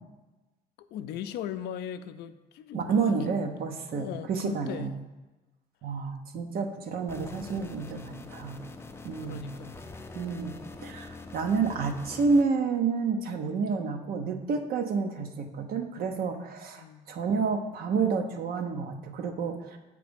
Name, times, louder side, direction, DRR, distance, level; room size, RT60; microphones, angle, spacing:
voice 1, 0.9-3.3 3.9-4.9 9.2-9.8 16.8-17.4, left 9 dB, 75° left, 11 dB, 0.4 m, -39 dB
voice 2, 2.7-4.9 5.8-8.6 9.0-9.5 10.1-19.8, right 5 dB, 60° right, 6 dB, 0.8 m, -29 dB
sound 1, 7.1-12.4, left 3 dB, 15° left, 0.5 m, -44 dB
8.0 x 3.3 x 5.2 m, 1.1 s
cardioid pair, 110°, 17 cm